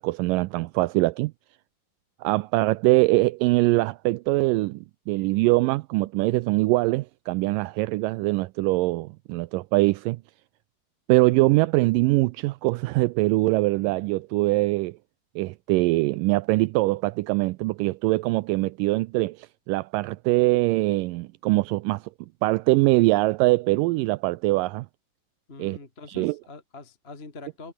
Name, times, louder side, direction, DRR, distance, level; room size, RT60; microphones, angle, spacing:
voice 1, 0.0-1.3 2.2-10.2 11.1-15.0 15.4-22.1 22.4-24.9 25.6-25.8 26.1-26.4, right 21 dB, 80° right, 2.2 m, -23 dB
voice 2, 25.5-27.7, left 3 dB, 20° left, 2.4 m, -43 dB
omnidirectional pair, 4.0 m